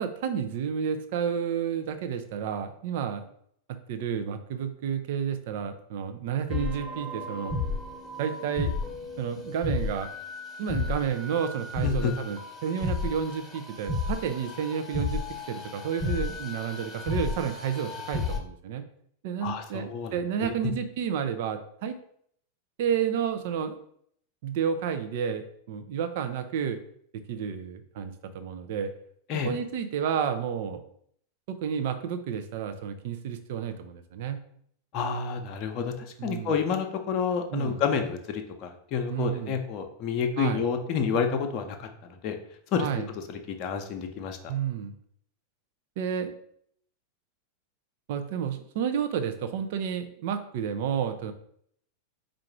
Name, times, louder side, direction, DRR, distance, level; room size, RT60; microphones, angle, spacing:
voice 1, 0.0-3.2 3.9-7.5 8.2-8.7 9.2-10.1 10.6-18.8 19.2-21.9 22.8-23.8 24.4-26.8 27.3-28.9 29.4-30.8 31.5-34.4 36.2-36.5 37.5-37.8 39.1-39.6 40.4-40.6 42.8-43.1 44.5-44.9 46.0-46.3 48.1-51.3, right 8 dB, 50° right, 8 dB, 0.5 m, -31 dB
sound 1, 6.5-18.4, left 3 dB, 10° left, 1.0 m, -33 dB
voice 2, 11.8-12.1 19.4-20.2 20.4-20.5 29.3-29.5 34.9-42.4 42.7-44.5, left 6 dB, 40° left, 4 dB, 0.7 m, -29 dB
4.7 x 2.5 x 4.5 m, 0.66 s
figure-of-eight pair, 90°, 0 cm